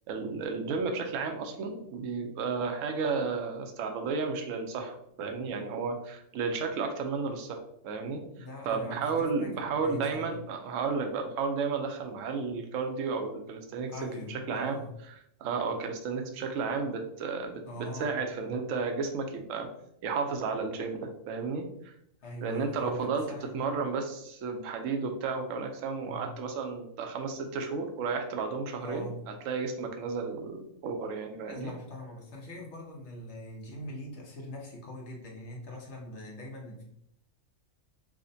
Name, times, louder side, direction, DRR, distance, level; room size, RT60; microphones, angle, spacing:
voice 1, 0.1-7.6 7.8-8.2 8.7-13.9 14.3-14.8 15.4-19.7 20.0-21.9 22.4-23.2 23.5-31.7, right 4 dB, 75° right, 4 dB, 0.9 m, -33 dB
voice 2, 8.3-9.5 9.8-10.3 13.9-14.9 17.6-18.2 22.2-23.7 26.0-26.3 28.8-29.2 31.5-36.8, equal, 60° left, -1 dB, 1.0 m, -42 dB
4.9 x 2.1 x 2.6 m, 0.73 s
omnidirectional pair, 1.4 m